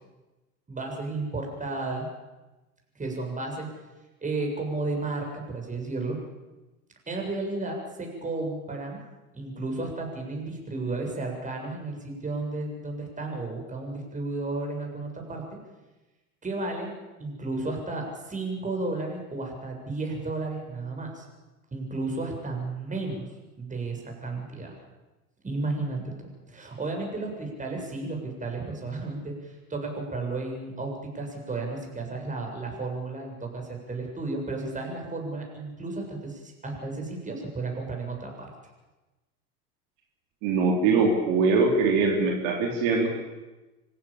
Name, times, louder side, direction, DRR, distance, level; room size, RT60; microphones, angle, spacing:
voice 1, 0.7-2.1 3.0-3.7 4.2-6.2 7.1-9.0 9.3-15.4 16.4-16.9 17.2-21.3 21.7-23.3 23.6-24.7 25.4-26.1 26.5-38.5, right 3 dB, 15° right, 1 dB, 7.3 m, -33 dB
voice 2, 40.4-43.1, right 4 dB, 55° right, 1 dB, 3.8 m, -22 dB
26.0 x 16.0 x 8.8 m, 1.1 s
hypercardioid pair, 85°, 44 cm